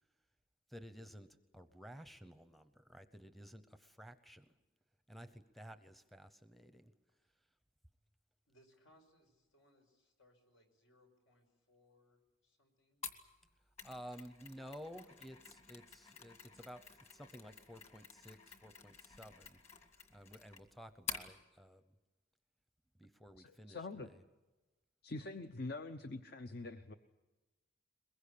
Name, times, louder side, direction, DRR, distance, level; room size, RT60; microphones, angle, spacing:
voice 1, 0.7-1.3 1.5-4.5 5.1-6.9 13.8-19.6 20.1-22.0 23.0-23.8 24.1-24.2, equal, ahead, 10 dB, 0.8 m, -53 dB
voice 2, 8.5-13.1, left 1 dB, 80° left, 4 dB, 5.5 m, -70 dB
Mechanisms, 13.0-21.3, left 5 dB, 35° left, 2.1 m, -51 dB
voice 3, 23.4-24.1 25.0-26.9, left 2 dB, 50° left, 9 dB, 0.8 m, -45 dB
23.0 x 21.5 x 8.6 m, 1.1 s
head